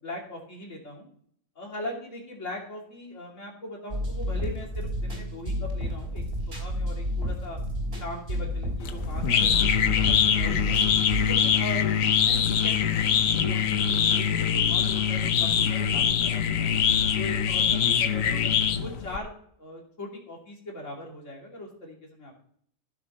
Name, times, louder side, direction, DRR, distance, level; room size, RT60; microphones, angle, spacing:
voice 1, 0.0-1.1 1.5-7.6 8.0-10.8 11.2-16.8 17.1-19.3 19.6-22.4, left 1 dB, 70° left, -1 dB, 3.2 m, -40 dB
sound 1, 3.9-11.3, equal, 55° right, 3.4 m, -31 dB
sound 2, 8.8-19.2, left 8 dB, 85° left, 1.2 m, -23 dB
15.0 x 6.8 x 4.3 m, 0.63 s
omnidirectional pair, 1.3 m